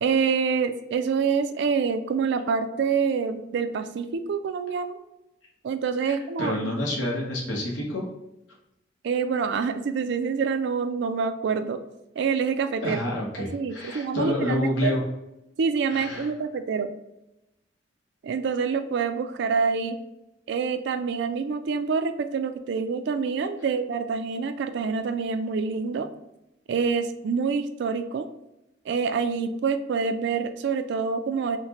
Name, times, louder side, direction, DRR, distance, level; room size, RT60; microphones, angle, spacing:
voice 1, 0.0-5.0 5.6-6.8 9.0-11.8 12.2-13.0 13.5-14.9 15.6-16.9 18.2-20.0 20.5-26.1 26.7-28.3 28.9-31.6, right 5 dB, 65° right, 9 dB, 0.3 m, -26 dB
voice 2, 6.1-8.0 12.8-15.0 15.9-16.3, left 1 dB, 75° left, -2 dB, 0.9 m, -28 dB
3.9 x 2.1 x 2.9 m, 0.89 s
head